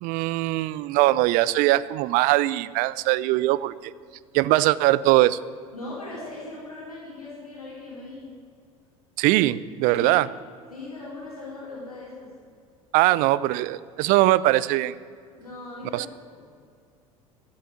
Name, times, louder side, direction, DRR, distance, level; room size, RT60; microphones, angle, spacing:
voice 1, 0.0-3.9 4.3-5.4 9.2-10.3 12.9-14.9 15.9-16.1, right 17 dB, 50° right, 19 dB, 0.5 m, -21 dB
voice 2, 5.7-8.3 9.9-10.2 10.7-12.3 15.4-16.0 16.3-16.4, left 2 dB, 85° left, -7 dB, 4.1 m, -39 dB
14.5 x 8.6 x 9.2 m, 2.2 s
figure-of-eight pair, 70°, 18 cm